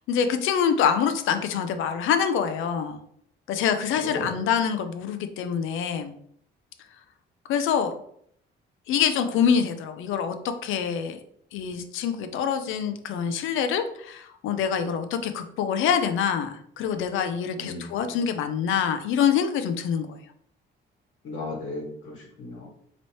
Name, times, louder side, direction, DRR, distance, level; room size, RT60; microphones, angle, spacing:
voice 1, 0.1-3.0 3.5-6.1 7.5-7.9 8.9-10.4 10.6-11.2 11.5-20.2, left 7 dB, 85° left, 8 dB, 0.5 m, -25 dB
voice 2, 4.0-4.3 17.6-17.9 21.2-22.7, left 2 dB, 70° left, -3 dB, 1.4 m, -35 dB
3.0 x 3.0 x 4.2 m, 0.67 s
cardioid pair, 90°, 20 cm